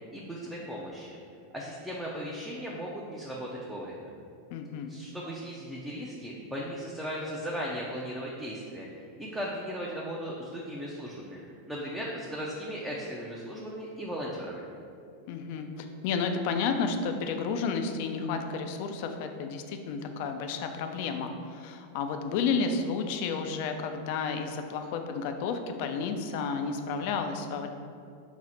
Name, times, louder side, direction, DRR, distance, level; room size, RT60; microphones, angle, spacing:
voice 1, 0.1-1.2 1.5-4.1 4.9-8.9 9.2-11.4 11.7-14.6, equal, 5° right, -5 dB, 0.5 m, -37 dB
voice 2, 4.5-4.9 15.3-27.7, left 5 dB, 60° left, 6 dB, 0.3 m, -31 dB
4.0 x 2.1 x 4.2 m, 2.4 s
hypercardioid pair, 105°, 0 cm